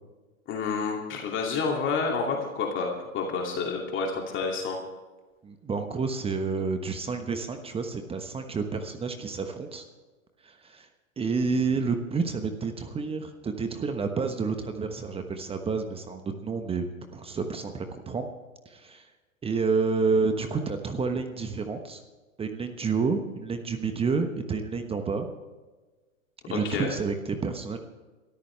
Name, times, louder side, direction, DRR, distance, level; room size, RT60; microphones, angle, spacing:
voice 1, 0.5-4.8 26.5-26.9, left 4 dB, 30° left, 0 dB, 2.6 m, -29 dB
voice 2, 5.4-9.8 10.4-10.9 11.2-16.9 17.1-18.3 18.6-19.1 19.4-22.0 22.4-25.2 26.5-27.8, right 4 dB, 15° right, 6 dB, 1.2 m, -29 dB
24.0 x 13.5 x 3.4 m, 1.3 s
hypercardioid pair, 110°, 41 cm